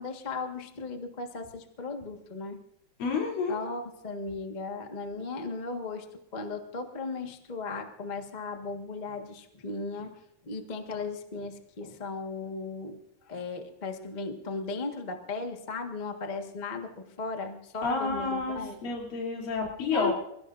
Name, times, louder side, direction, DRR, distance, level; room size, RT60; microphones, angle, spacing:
voice 1, 0.0-2.6 3.5-6.1 6.3-10.1 10.4-13.0 13.3-18.8 19.9-20.1, left 3 dB, 60° left, 4 dB, 0.4 m, -36 dB
voice 2, 3.0-3.6 17.8-20.1, left 4 dB, 80° left, -1 dB, 4.9 m, -30 dB
27.5 x 16.5 x 2.6 m, 0.80 s
omnidirectional pair, 3.9 m